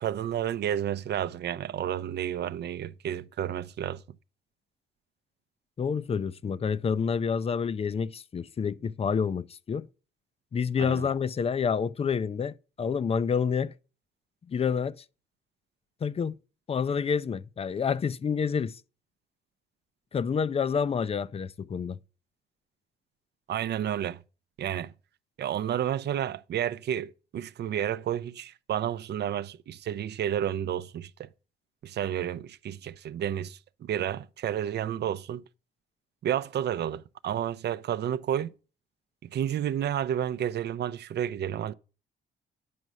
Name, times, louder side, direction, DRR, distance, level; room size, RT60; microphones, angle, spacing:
voice 1, 0.0-4.0 10.8-11.1 23.5-24.2 24.6-24.9 25.4-31.1 31.8-35.4 36.2-38.5 39.3-41.7, right 10 dB, 55° right, 0.6 m, -31 dB
voice 2, 5.8-9.9 10.5-13.7 14.5-14.9 16.0-16.4 16.7-18.8 20.1-22.0, left 6 dB, 30° left, 0.4 m, -28 dB
9.4 x 5.3 x 6.2 m
cardioid pair, 90°, 20 cm